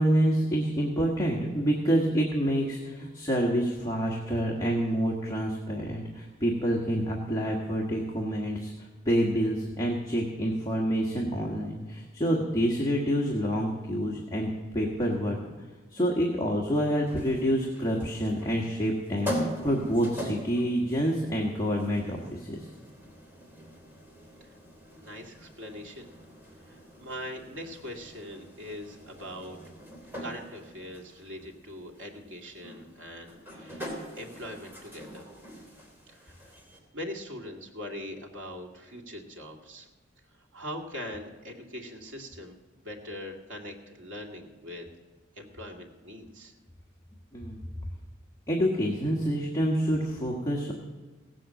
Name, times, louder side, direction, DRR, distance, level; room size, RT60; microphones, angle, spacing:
voice 1, 0.0-15.4 15.9-19.3 19.6-22.7 47.3-47.6 48.5-50.7, equal, 20° left, -2 dB, 1.5 m, -27 dB
sound 1, 17.1-36.8, equal, 10° right, 3.3 m, -42 dB
voice 2, 25.0-26.1 26.5-29.6 30.2-33.9 34.2-35.3 36.1-36.6 36.9-39.9 40.3-42.6 42.8-44.9 45.4-46.5, left 1 dB, 90° right, 1 dB, 2.2 m, -42 dB
17.5 x 7.8 x 7.6 m, 1.3 s
head